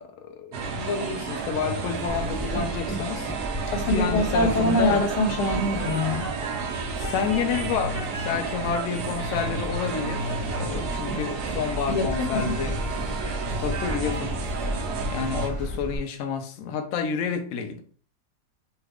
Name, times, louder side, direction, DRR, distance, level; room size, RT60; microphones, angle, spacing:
voice 1, 0.0-3.3 3.8-5.0 6.9-12.8 13.6-14.3 15.1-17.8, left 6 dB, 70° left, 0.8 m, -29 dB
sound 1, 0.5-15.5, right 4 dB, 70° right, 1.0 m, -32 dB
Train, 2.1-16.0, equal, 25° left, 0.9 m, -33 dB
voice 2, 3.7-6.3 11.9-12.6, left 1 dB, 90° left, 1.4 m, -24 dB
3.2 x 2.4 x 3.4 m
omnidirectional pair, 1.8 m